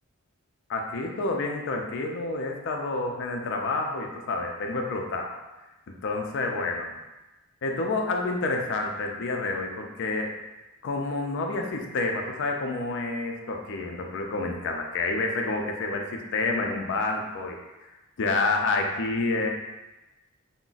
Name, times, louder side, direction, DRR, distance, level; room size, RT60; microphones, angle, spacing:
voice 1, 0.7-5.4 5.9-6.9 7.6-10.3 10.8-17.9 18.2-19.5, left 3 dB, 60° left, 2 dB, 0.4 m, -29 dB
2.4 x 2.1 x 3.8 m, 1.1 s
head